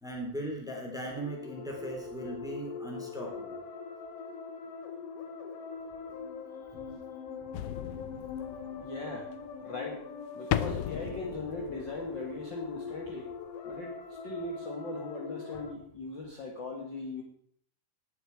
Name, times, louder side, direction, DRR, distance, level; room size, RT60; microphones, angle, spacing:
voice 1, 0.0-3.6 6.7-6.8, right 1 dB, ahead, 0 dB, 2.8 m, -38 dB
sound 1, 1.2-15.7, left 5 dB, 60° left, 2.2 m, -42 dB
sound 2, 7.5-9.0 10.5-12.4 12.8-12.9, left 11 dB, 90° left, 1.3 m, -35 dB
voice 2, 8.8-9.3 9.6-10.1 10.3-13.3 13.6-17.2, left 2 dB, 45° left, 0 dB, 1.9 m, -39 dB
18.0 x 7.6 x 4.6 m, 0.62 s
omnidirectional pair, 3.5 m